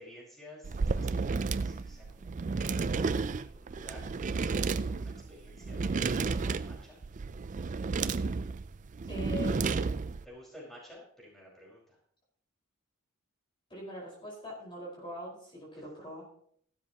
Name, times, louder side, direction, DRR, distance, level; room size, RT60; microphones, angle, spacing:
voice 1, 0.0-7.0 10.2-12.0 15.7-15.8, left 1 dB, ahead, -5 dB, 5.1 m, -53 dB
sound 1, 0.6-10.2, right 4 dB, 35° right, 0.4 m, -32 dB
voice 2, 9.1-9.8 13.7-16.2, left 1 dB, 25° left, -4 dB, 4.9 m, -42 dB
15.5 x 12.5 x 3.0 m, 0.64 s
head